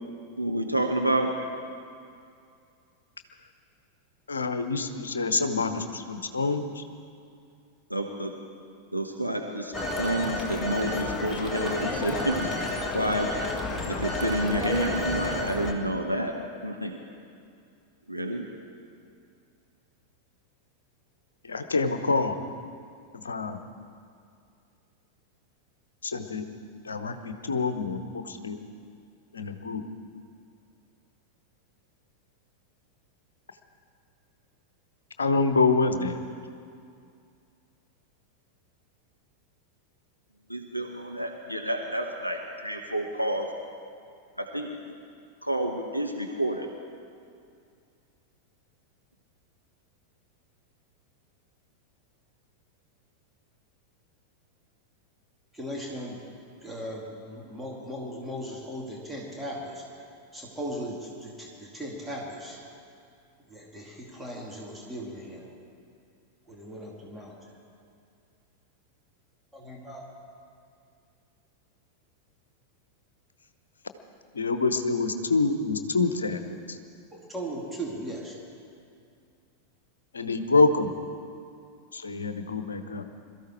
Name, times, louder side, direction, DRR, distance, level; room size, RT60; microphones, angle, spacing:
voice 1, 0.4-1.3 7.9-8.3 8.9-12.5 12.9-13.3 13.9-16.4 16.6-17.0 18.1-18.5 40.5-43.5 44.4-44.7 45.4-46.7, right 1 dB, 90° right, 2 dB, 1.1 m, -29 dB
voice 2, 4.3-6.8 21.4-22.4 23.1-23.6 26.0-26.4 26.8-28.6 29.3-29.8 35.2-36.2 74.3-76.8 80.1-80.9 81.9-83.0, left 3 dB, 75° left, 8 dB, 1.0 m, -26 dB
Telephone, 9.7-15.7, left 2 dB, 15° left, 1.7 m, -31 dB
voice 3, 55.5-56.2 56.6-59.8 60.3-62.6 63.5-65.5 66.5-67.3 69.5-70.1 77.1-78.4, equal, 5° right, -3 dB, 2.6 m, -38 dB
22.0 x 13.5 x 4.6 m, 2.4 s
figure-of-eight pair, 90°, 0 cm